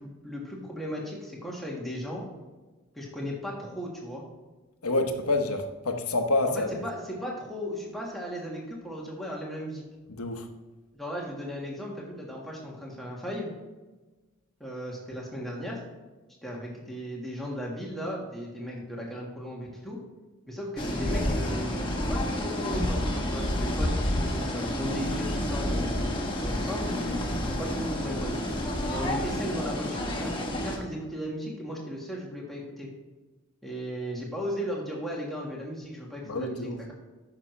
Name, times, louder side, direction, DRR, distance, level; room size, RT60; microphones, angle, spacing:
voice 1, 0.0-2.2 2.9-4.2 6.5-9.8 10.9-13.5 14.6-15.8 16.4-20.0 20.5-23.0 23.3-28.3 28.9-32.9 33.6-36.9, equal, ahead, -3 dB, 1.5 m, -36 dB
voice 2, 4.8-6.8 10.1-10.5 36.3-36.8, left 2 dB, 85° left, 5 dB, 1.0 m, -28 dB
sound 1, 20.8-30.8, left 1 dB, 20° left, 1.1 m, -29 dB
9.7 x 6.5 x 3.2 m, 1.2 s
head